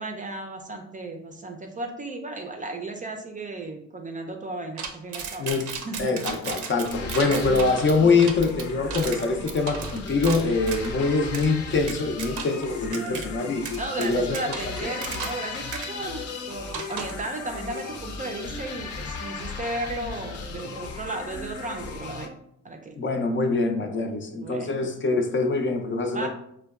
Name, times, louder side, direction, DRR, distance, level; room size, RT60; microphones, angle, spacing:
voice 1, 0.0-5.5 5.8-6.1 7.2-7.8 12.5-12.6 12.9-13.2 13.8-22.4 22.6-22.9 24.3-24.8 26.1-26.3, right 2 dB, 25° right, 3 dB, 0.4 m, -35 dB
sound 1, 4.8-10.9 11.3-11.5 11.9-12.7 12.9-13.3 13.7-15.5 15.7-15.9 16.7-17.2, right 6 dB, 80° right, 0.5 m, -35 dB
voice 2, 6.0-13.7 14.0-14.4 23.0-26.3, left 3 dB, 40° left, 4 dB, 0.5 m, -24 dB
sound 2, 6.9-22.3, left 4 dB, 70° left, 0.7 m, -36 dB
4.4 x 2.2 x 2.3 m, 0.72 s
cardioid pair, 90°, 30 cm